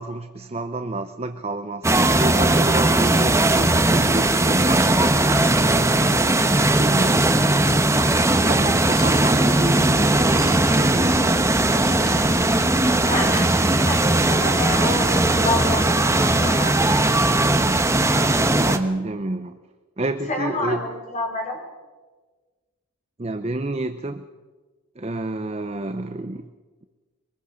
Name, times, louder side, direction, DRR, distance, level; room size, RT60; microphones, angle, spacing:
voice 1, 0.0-3.4 3.8-5.8 6.1-6.4 6.8-7.3 8.4-11.2 17.6-18.0 18.6-19.6 20.0-20.8 23.2-24.3 25.0-26.5, right 2 dB, 30° right, 9 dB, 0.6 m, -29 dB
sound 1, 1.8-18.8, right 2 dB, 15° right, 0.9 m, -19 dB
Ratchet pawl / Tools, 8.9-9.7 10.1-11.2 11.8-12.8 13.3-14.3, left 5 dB, 65° left, 5.8 m, -40 dB
voice 2, 13.0-17.0 20.3-21.6, left 1 dB, 35° left, 1 dB, 4.4 m, -28 dB
23.5 x 20.0 x 6.4 m, 1.3 s
head